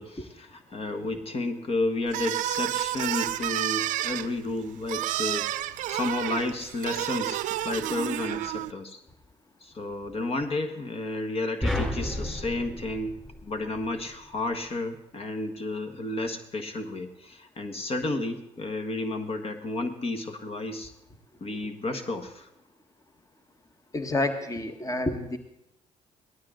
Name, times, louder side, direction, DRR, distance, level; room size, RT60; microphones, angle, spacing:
voice 1, 0.0-5.5 5.9-9.0 9.6-20.9 21.4-22.5, left 2 dB, 50° left, 7 dB, 1.6 m, -32 dB
sound 1, 2.1-8.7, right 14 dB, 80° right, 0.5 m, -30 dB
sound 2, 11.6-14.0, left 1 dB, 5° left, 3.9 m, -32 dB
voice 2, 23.9-25.4, left 2 dB, 25° left, 7 dB, 1.5 m, -29 dB
18.0 x 12.5 x 3.9 m, 0.83 s
supercardioid pair, 65°, 13 cm